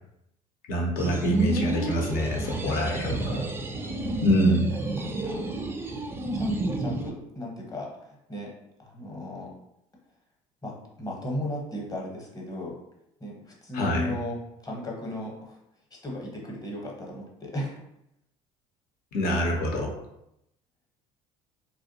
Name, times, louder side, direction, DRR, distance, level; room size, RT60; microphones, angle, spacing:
voice 1, 0.7-3.1 4.2-4.7 13.7-14.2 19.1-20.0, equal, 60° left, 0 dB, 0.7 m, -25 dB
sound 1, 1.0-7.1, right 2 dB, 15° right, 0.4 m, -30 dB
voice 2, 2.7-3.4 3.9-4.5 4.8-6.0 6.3-6.5 6.8-8.5 8.8-9.5 10.6-12.8 13.2-15.6 15.9-17.8, left 1 dB, 20° left, -2 dB, 0.9 m, -36 dB
2.5 x 2.1 x 2.7 m, 0.81 s
hypercardioid pair, 65°, 18 cm